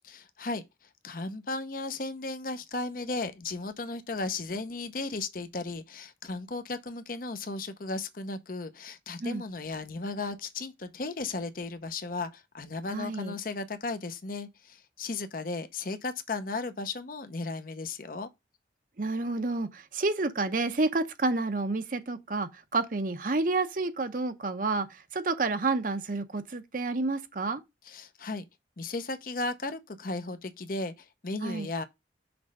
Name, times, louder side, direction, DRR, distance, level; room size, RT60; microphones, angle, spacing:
voice 1, 0.1-0.6 1.0-18.3 27.8-28.4 28.8-31.8, left 3 dB, 50° left, 0.7 m, -35 dB
voice 2, 12.9-13.4 19.0-24.9 25.1-27.6 31.4-31.7, right 3 dB, 45° right, 0.7 m, -29 dB
6.0 x 3.2 x 5.2 m
head